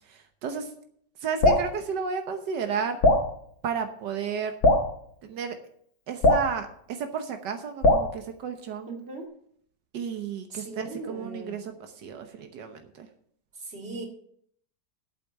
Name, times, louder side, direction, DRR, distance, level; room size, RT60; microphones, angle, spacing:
voice 1, 0.1-0.7 1.2-3.0 3.6-4.5 5.2-5.6 6.1-8.9 9.9-13.1, right 6 dB, 85° right, 6 dB, 1.6 m, -33 dB
Drip, 1.4-1.7 3.0-3.3 4.6-4.9 6.2-6.5 7.8-8.1, left 2 dB, 65° left, 2.0 m, -19 dB
voice 2, 8.9-9.3 10.5-11.5 13.6-14.0, right 2 dB, 35° right, 2 dB, 2.5 m, -38 dB
8.4 x 8.4 x 7.9 m, 0.65 s
omnidirectional pair, 1.8 m